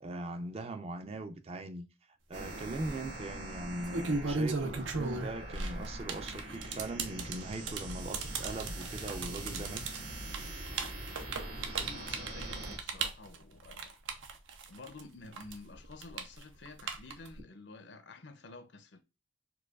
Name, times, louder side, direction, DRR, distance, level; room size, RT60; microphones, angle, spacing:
voice 1, 0.0-1.9 2.3-10.0, right 2 dB, 30° right, 0.4 m, -40 dB
sound 1, 2.3-12.8, right 1 dB, 70° right, 1.4 m, -43 dB
sound 2, 2.5-2.9 3.6-15.0 15.3-17.4, right 4 dB, 90° right, 0.7 m, -36 dB
voice 2, 11.6-13.9 14.7-19.0, left 3 dB, 65° left, 0.6 m, -50 dB
4.6 x 2.3 x 2.3 m
head